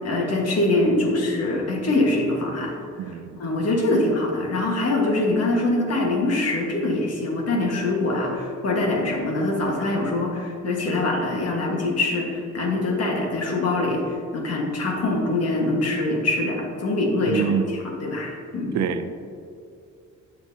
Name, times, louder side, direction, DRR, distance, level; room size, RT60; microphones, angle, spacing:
voice 1, 0.0-2.8 3.1-18.8, left 2 dB, 55° left, 0 dB, 1.5 m, -24 dB
voice 2, 3.0-3.4 17.3-17.7 18.7-19.1, right 8 dB, 65° right, 9 dB, 0.5 m, -26 dB
8.1 x 6.1 x 2.7 m, 2.5 s
cardioid pair, 90°, 30 cm